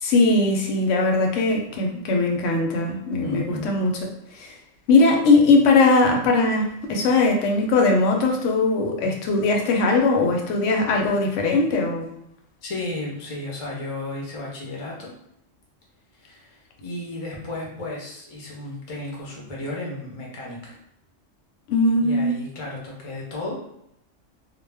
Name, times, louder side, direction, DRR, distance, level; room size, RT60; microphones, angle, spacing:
voice 1, 0.0-3.9 4.3-4.5 4.9-12.1 21.7-22.4, left 3 dB, 80° left, 1 dB, 0.9 m, -20 dB
voice 2, 3.2-3.7 12.6-15.1 16.1-20.8 22.0-23.6, left 2 dB, 40° left, -3 dB, 0.5 m, -34 dB
2.3 x 2.0 x 3.3 m, 0.77 s
omnidirectional pair, 1.3 m